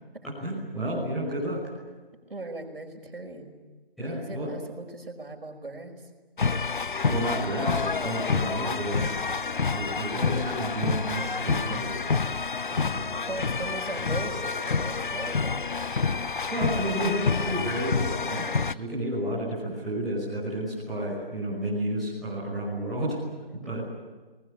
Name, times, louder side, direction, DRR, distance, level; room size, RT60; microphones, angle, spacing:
voice 1, 0.2-1.6 4.0-4.5 7.1-9.0 9.7-11.9 12.7-13.1 16.5-23.2 23.7-23.8, right 1 dB, ahead, -12 dB, 5.9 m, -31 dB
voice 2, 2.3-3.5 4.0-6.1 13.2-16.0 23.5-23.9, right 2 dB, 70° right, 4 dB, 5.1 m, -39 dB
sound 1, 6.4-18.7, left 4 dB, 55° left, 0.8 m, -28 dB
30.0 x 20.5 x 8.7 m, 1.3 s
figure-of-eight pair, 170°, 30 cm